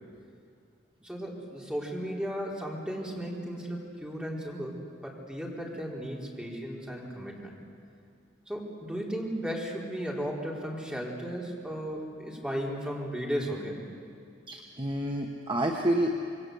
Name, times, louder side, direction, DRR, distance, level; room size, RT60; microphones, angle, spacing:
voice 1, 1.0-7.5 8.5-13.8, equal, 5° right, -3 dB, 4.4 m, -35 dB
voice 2, 14.5-16.2, right 1 dB, 25° right, 2 dB, 1.4 m, -29 dB
27.0 x 22.5 x 8.1 m, 2.4 s
head